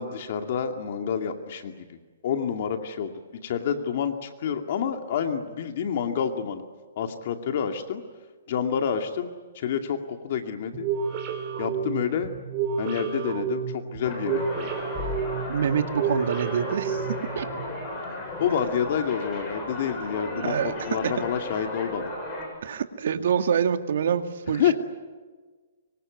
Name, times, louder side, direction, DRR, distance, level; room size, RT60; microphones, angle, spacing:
voice 1, 0.0-2.0 2.2-3.1 3.4-6.6 7.0-8.0 8.5-10.9 11.6-12.3 12.8-14.7 18.4-22.1 24.6-24.7, left 7 dB, 45° left, 6 dB, 2.3 m, -28 dB
sound 1, 10.7-17.6, right 6 dB, 30° right, 3.5 m, -31 dB
sound 2, 14.0-22.5, left 2 dB, 15° left, 7.5 m, -35 dB
voice 2, 15.5-17.5 20.4-21.1 22.6-24.7, right 8 dB, 60° right, 8 dB, 2.2 m, -26 dB
24.5 x 24.5 x 9.5 m, 1.4 s
hypercardioid pair, 170°, 0 cm